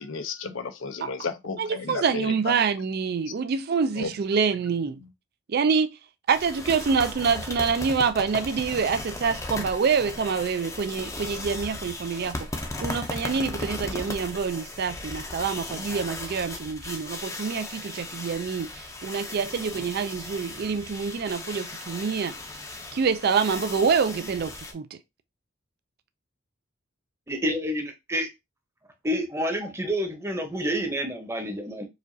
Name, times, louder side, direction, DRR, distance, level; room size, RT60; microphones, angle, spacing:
voice 1, 0.0-2.6 4.0-4.1 5.0-5.1, left 4 dB, 75° left, 0.6 m, -33 dB
voice 2, 1.6-5.0 5.5-5.9 6.3-12.5 12.8-22.3 22.9-25.0, right 5 dB, 50° right, 0.4 m, -26 dB
sound 1, 6.3-24.7, left 2 dB, 15° left, 0.6 m, -37 dB
voice 3, 27.3-28.3 29.0-31.9, equal, 15° right, 0.8 m, -28 dB
4.8 x 2.4 x 2.6 m
head